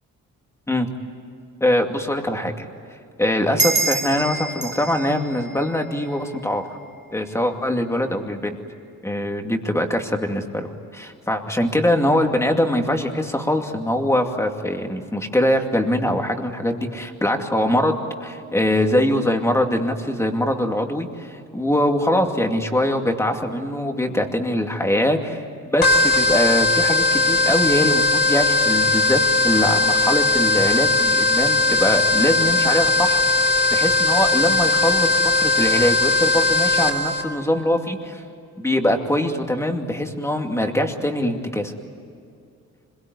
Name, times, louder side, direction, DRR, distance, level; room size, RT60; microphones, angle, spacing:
voice 1, 1.6-2.7 3.2-6.6 7.1-8.5 9.0-38.2 38.6-41.7, left 1 dB, 10° left, 4 dB, 2.4 m, -22 dB
sound 1, 3.6-6.7, right 3 dB, 25° right, 2.0 m, -27 dB
sound 2, 25.8-37.2, left 3 dB, 35° left, 3.5 m, -19 dB
26.0 x 22.5 x 9.5 m, 2.4 s
cardioid pair, 135°, 30 cm